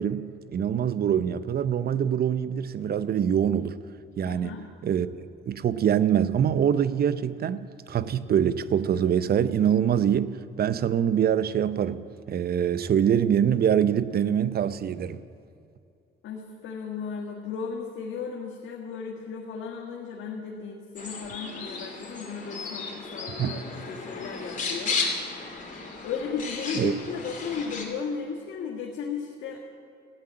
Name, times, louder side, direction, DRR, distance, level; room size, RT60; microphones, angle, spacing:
voice 1, 0.0-3.8 4.2-15.2 23.4-23.6 26.7-26.9, right 9 dB, 50° right, 15 dB, 0.7 m, -24 dB
voice 2, 4.2-4.6 16.2-25.0 26.0-29.6, left 5 dB, 75° left, -2 dB, 1.6 m, -35 dB
sound 1, 21.0-27.9, left 4 dB, 40° left, 2.9 m, -34 dB
14.5 x 9.0 x 8.8 m, 2.6 s
cardioid pair, 90°, 20 cm